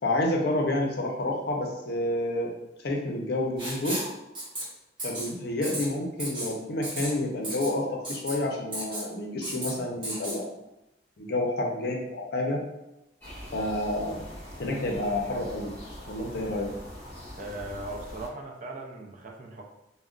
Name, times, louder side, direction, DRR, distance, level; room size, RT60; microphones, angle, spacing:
voice 1, 0.0-2.5 2.8-4.0 5.0-10.4 11.2-12.6 13.5-14.3 14.6-15.7 16.1-16.7, left 1 dB, 55° left, 0 dB, 0.5 m, -29 dB
Writing, 3.6-4.1 4.3-4.6 5.0-5.3 5.6-5.8 6.2-6.5 6.8-7.1 7.4-7.7 8.0-8.3 8.7-9.0 9.4-9.7 10.0-10.4, right 1 dB, 25° right, 1.0 m, -34 dB
sound 1, 13.2-18.3, equal, 10° left, 0.7 m, -43 dB
voice 2, 17.4-19.6, right 2 dB, 40° right, 0 dB, 0.4 m, -39 dB
2.4 x 2.1 x 3.6 m, 0.89 s
head